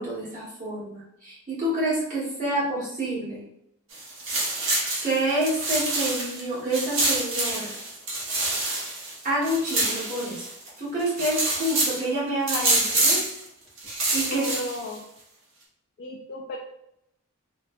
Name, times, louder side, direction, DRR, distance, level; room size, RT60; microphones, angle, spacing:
voice 1, 0.0-3.4 5.0-7.7 9.2-10.4 10.8-13.2 13.9-14.5, right 1 dB, 35° right, -9 dB, 1.4 m, -28 dB
sound 1, 3.9-6.4 6.7-10.7 11.0-12.0 12.5-13.4 13.8-14.9, right 2 dB, 60° right, 0.9 m, -26 dB
voice 2, 14.3-15.0 16.0-16.6, equal, 45° left, -1 dB, 0.3 m, -34 dB
3.2 x 2.2 x 2.6 m, 0.79 s
head